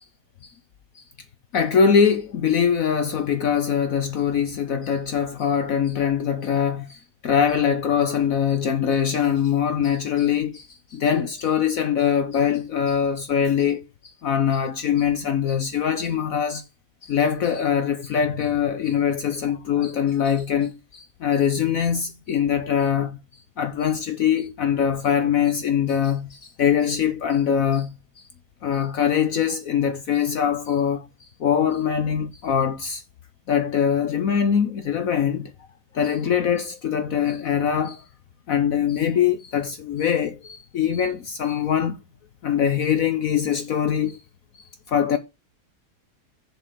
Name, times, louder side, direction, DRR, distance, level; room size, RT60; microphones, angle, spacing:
voice 1, 1.5-16.6 17.0-23.2 23.6-27.9 28.6-31.1 31.4-33.0 33.5-35.5 35.9-38.0 38.5-42.0 42.4-44.2 44.6-45.2, left 8 dB, 60° left, 1.2 m, -23 dB
7.1 x 5.8 x 5.9 m
omnidirectional pair, 1.7 m